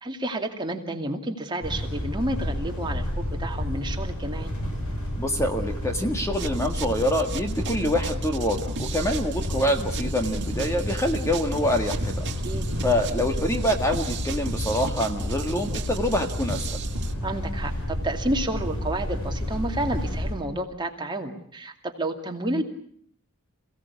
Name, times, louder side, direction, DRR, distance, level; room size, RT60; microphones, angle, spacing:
voice 1, 0.0-4.5 12.4-12.6 17.2-22.6, right 1 dB, 20° right, 3 dB, 2.5 m, -30 dB
sound 1, 1.6-20.4, left 1 dB, 90° left, 7.9 m, -30 dB
voice 2, 5.2-12.3 12.8-16.8, left 1 dB, 15° left, 4 dB, 1.8 m, -26 dB
sound 2, 6.3-17.1, right 5 dB, 55° right, 1.9 m, -37 dB
28.0 x 17.0 x 8.3 m, 0.63 s
head